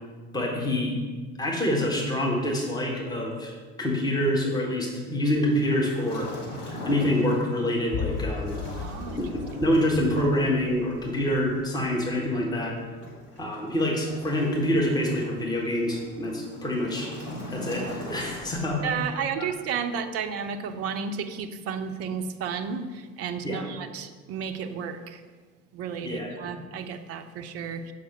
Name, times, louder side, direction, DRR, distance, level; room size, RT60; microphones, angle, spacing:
voice 1, 0.3-0.9 1.4-6.3 6.8-8.6 9.2-9.3 9.6-12.8 13.4-17.1 17.5-18.8 19.4-19.5 23.4-23.6 26.0-26.3, left 1 dB, 10° left, -1 dB, 1.3 m, -26 dB
Waves surf, 5.5-19.2, left 1 dB, 85° left, 1.5 m, -41 dB
sound 1, 7.9-12.2 12.4-12.5, left 7 dB, 25° left, 0.4 m, -36 dB
voice 2, 8.8-9.3 18.8-25.2 25.7-27.9, right 6 dB, 35° right, 8 dB, 0.6 m, -32 dB
6.8 x 5.0 x 4.5 m, 1.5 s
figure-of-eight pair, 65°, 44 cm